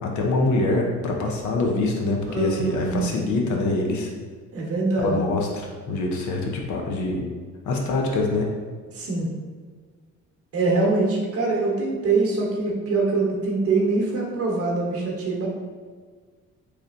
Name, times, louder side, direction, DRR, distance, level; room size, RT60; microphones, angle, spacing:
voice 1, 0.0-4.1 5.0-7.2 7.7-8.5, left 2 dB, 75° left, 1 dB, 0.6 m, -24 dB
voice 2, 2.3-3.2 4.5-5.2 8.9-9.3 10.5-15.5, right 3 dB, 50° right, -2 dB, 0.9 m, -24 dB
3.2 x 2.8 x 2.5 m, 1.5 s
cardioid pair, 90°, 30 cm